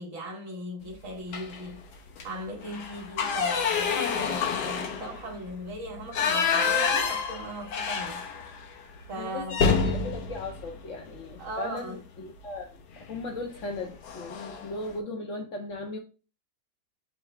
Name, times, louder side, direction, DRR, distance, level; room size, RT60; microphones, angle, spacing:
voice 1, 0.0-1.8 2.2-8.8 9.1-9.7 11.4-12.0, right 1 dB, 60° right, 1.4 m, -38 dB
sound 1, 1.3-1.7 2.1-2.2 2.6-8.7 9.0-9.1 9.5-11.6 13.0-13.2 13.6-13.8 14.0-14.7, left 5 dB, 90° left, 1.4 m, -28 dB
voice 2, 9.2-16.0, left 3 dB, 60° left, 1.0 m, -37 dB
5.6 x 2.0 x 4.3 m
omnidirectional pair, 1.7 m